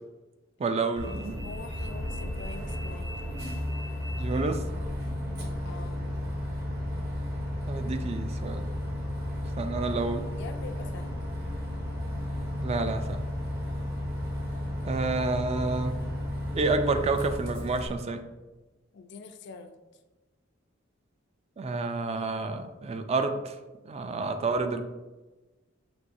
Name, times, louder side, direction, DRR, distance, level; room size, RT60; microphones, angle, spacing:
voice 1, 0.6-1.4 4.2-4.7 7.7-8.8 9.6-10.3 12.5-13.2 14.8-16.0 16.5-18.2 21.6-23.6 23.9-24.8, right 3 dB, 30° right, 8 dB, 0.3 m, -29 dB
Bus, 1.0-17.9, left 1 dB, 55° right, 1.2 m, -33 dB
voice 2, 1.4-3.2 5.6-6.0 10.4-11.1 18.9-19.7, left 4 dB, 60° left, 7 dB, 0.4 m, -44 dB
6.1 x 3.0 x 2.6 m, 1.2 s
head